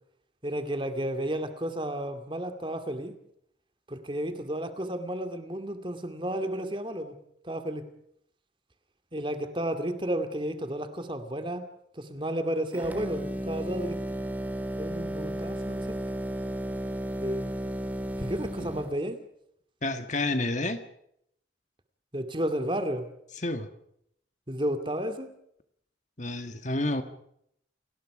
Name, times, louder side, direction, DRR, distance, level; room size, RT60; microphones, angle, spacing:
voice 1, 0.4-3.2 3.9-7.1 7.4-7.8 9.1-11.6 11.9-14.0 14.8-16.0 17.2-17.5 18.2-19.2 22.1-23.1 24.5-25.3, right 1 dB, 25° right, 2.4 m, -32 dB
sound 1, 12.7-19.0, equal, 10° right, 2.8 m, -34 dB
voice 2, 19.8-20.8 23.4-23.7 26.2-27.0, left 2 dB, 40° left, 1.7 m, -29 dB
30.0 x 19.5 x 5.0 m
head